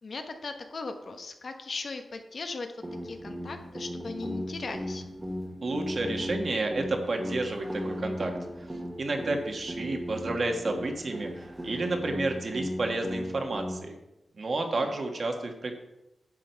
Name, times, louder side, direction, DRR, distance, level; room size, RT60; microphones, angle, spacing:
voice 1, 0.0-5.0 14.5-15.0, left 3 dB, 50° left, 5 dB, 1.1 m, -38 dB
sound 1, 2.8-13.8, equal, 15° right, 1.3 m, -36 dB
voice 2, 5.6-8.3 8.6-8.7 9.0-14.0 14.4-15.7, right 2 dB, 45° right, 3 dB, 1.5 m, -31 dB
9.9 x 7.7 x 4.6 m, 0.93 s
wide cardioid pair, 135°, 0 cm